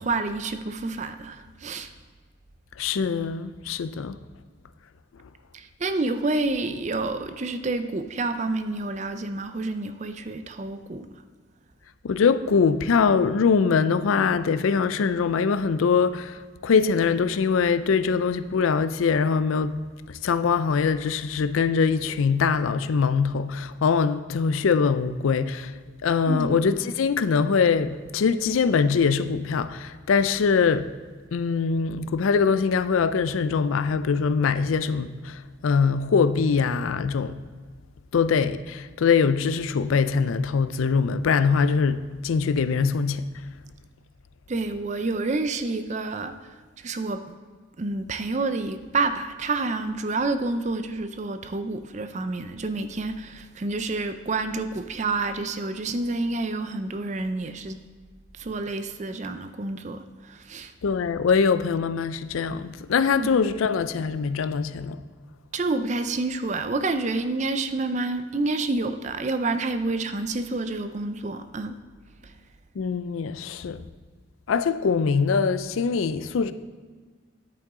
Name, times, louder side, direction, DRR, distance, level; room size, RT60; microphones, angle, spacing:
voice 1, 0.0-1.9 5.5-11.1 26.3-26.6 44.5-46.3 46.8-47.2 47.8-57.8 58.4-60.7 63.2-63.3 65.5-71.8, right 3 dB, 35° right, 0.4 m, -28 dB
voice 2, 2.8-4.2 12.0-19.8 20.1-25.7 26.0-30.9 31.3-37.4 38.1-43.3 60.8-65.0 72.8-73.8 74.5-76.5, left 5 dB, 80° left, 0.4 m, -23 dB
10.0 x 8.5 x 3.7 m
head